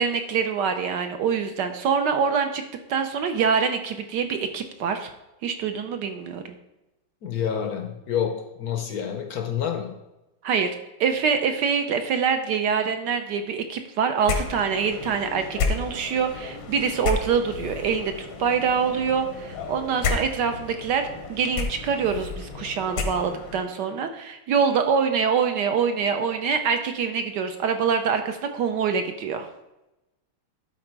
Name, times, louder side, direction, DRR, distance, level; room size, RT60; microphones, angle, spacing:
voice 1, 0.0-2.6 2.9-5.1 5.4-6.4 10.4-10.7 11.0-29.5, right 6 dB, 70° right, 7 dB, 1.0 m, -25 dB
voice 2, 7.2-9.9, left 8 dB, 70° left, 4 dB, 0.9 m, -28 dB
sound 1, 14.2-23.6, left 4 dB, 85° left, 2.0 m, -32 dB
11.5 x 4.3 x 4.6 m, 0.97 s
omnidirectional pair, 2.4 m